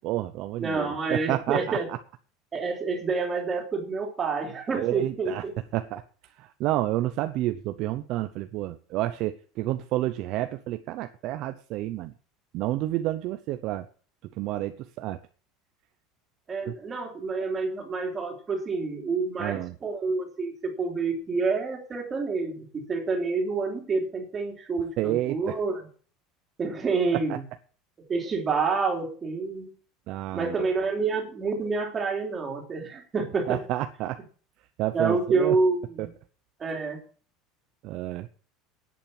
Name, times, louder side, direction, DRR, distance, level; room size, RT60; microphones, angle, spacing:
voice 1, 0.0-1.8 4.8-5.4 5.7-6.0 6.4-12.1 12.5-13.9 14.4-15.2 19.4-19.7 25.0-25.6 27.3-27.4 30.1-30.5 33.5-34.2 34.8-35.5 36.0-36.1 37.8-38.3, right 15 dB, 45° right, 10 dB, 0.7 m, -29 dB
voice 2, 0.6-1.9 2.5-5.5 16.5-25.9 26.6-27.4 28.1-29.7 30.3-33.6 34.9-36.1 36.6-37.0, right 4 dB, 20° right, 2 dB, 3.0 m, -28 dB
10.5 x 8.6 x 7.1 m, 0.42 s
cardioid pair, 175°, 0 cm